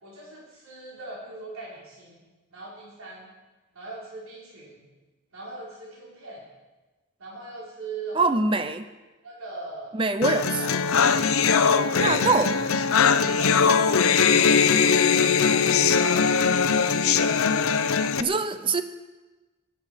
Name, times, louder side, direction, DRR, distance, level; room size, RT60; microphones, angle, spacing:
voice 1, 0.0-2.2 2.5-3.3 3.7-4.8 5.3-6.4 7.2-8.3 9.2-10.8 11.8-12.3 12.9-14.8 15.1-18.3, right 2 dB, 85° right, -5 dB, 4.2 m, -41 dB
voice 2, 8.1-8.9 9.9-10.8 12.0-12.5 18.2-18.8, right 3 dB, 25° right, 11 dB, 0.7 m, -24 dB
sound 1, 10.2-18.2, left 6 dB, 85° left, 0.7 m, -21 dB
21.5 x 8.7 x 5.8 m, 1.2 s
head